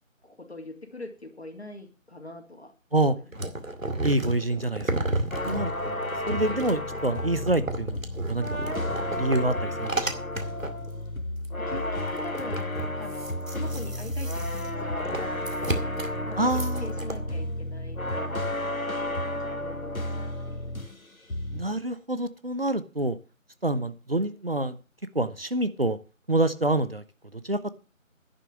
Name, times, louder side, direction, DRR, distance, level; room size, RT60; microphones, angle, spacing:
voice 1, 0.2-2.7 3.0-3.5 5.4-5.8 11.6-20.7, left 2 dB, 50° left, 5 dB, 3.0 m, -43 dB
sound 1, 3.3-10.9 11.4-11.5 11.7-17.2, right 2 dB, 75° right, 2.4 m, -33 dB
voice 2, 4.0-4.9 5.5-6.0 6.3-10.1 16.4-16.9 21.5-23.2 23.6-24.8 25.1-26.0 26.3-27.0 27.3-27.7, right 2 dB, 45° right, 12 dB, 1.0 m, -27 dB
sound 2, 5.3-21.0 21.3-21.7, left 1 dB, 85° left, 2.2 m, -32 dB
11.0 x 6.9 x 7.7 m, 0.33 s
figure-of-eight pair, 170°, 41 cm